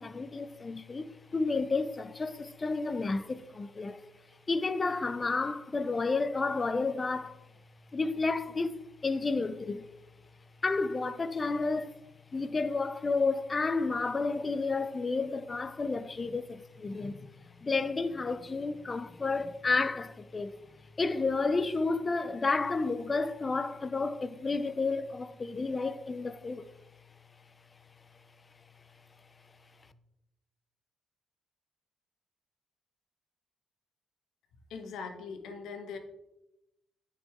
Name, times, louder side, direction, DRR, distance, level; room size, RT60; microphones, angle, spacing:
voice 1, 0.0-7.4 7.9-9.9 10.6-12.0 12.3-17.3 17.6-26.7, left 3 dB, 30° left, 0.5 m, -31 dB
voice 2, 34.7-36.0, left 5 dB, 80° left, 1.3 m, -41 dB
9.4 x 5.4 x 3.6 m
cardioid pair, 90°, 0 cm